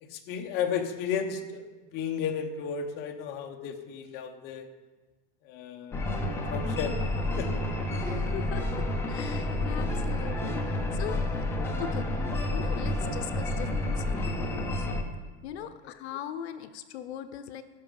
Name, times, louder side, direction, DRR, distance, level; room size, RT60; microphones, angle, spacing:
voice 1, 0.0-4.7 5.4-6.1 6.5-7.0 7.4-7.6 15.6-15.7, left 7 dB, 30° left, 4 dB, 0.9 m, -33 dB
sound 1, 5.9-15.0, left 1 dB, 5° left, 0.6 m, -30 dB
voice 2, 7.9-11.4 11.8-14.9 15.4-17.6, left 9 dB, 70° left, 11 dB, 0.8 m, -40 dB
17.0 x 5.9 x 5.3 m, 1.3 s
supercardioid pair, 170°, 33 cm